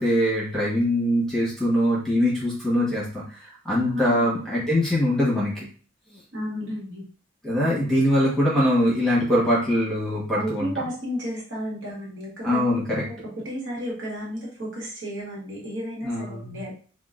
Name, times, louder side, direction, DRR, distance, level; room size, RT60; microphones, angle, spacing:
voice 1, 0.0-3.2 3.6-5.7 7.4-10.7 12.4-13.0 16.0-16.6, equal, 5° left, -6 dB, 1.1 m, -22 dB
voice 2, 3.9-4.5 6.3-7.0 10.3-12.7 13.4-16.7, equal, 70° right, -5 dB, 1.4 m, -33 dB
3.7 x 2.3 x 2.4 m, 0.41 s
head